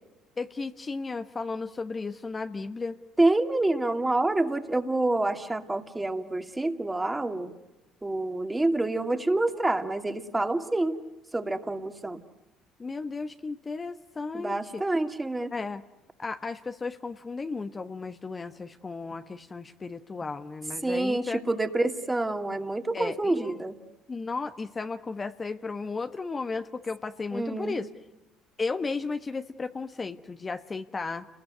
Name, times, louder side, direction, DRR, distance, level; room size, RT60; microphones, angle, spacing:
voice 1, 0.4-3.0 12.8-14.8 15.5-15.8 16.2-21.4 22.9-23.5 24.1-27.9 28.6-31.3, left 4 dB, 30° left, 8 dB, 1.2 m, -34 dB
voice 2, 3.2-7.5 8.0-11.0 11.3-12.2 14.3-15.5 20.8-23.8 27.3-27.8, right 2 dB, 15° right, 7 dB, 2.4 m, -27 dB
29.5 x 20.5 x 9.5 m, 1.1 s
supercardioid pair, 70°, 0 cm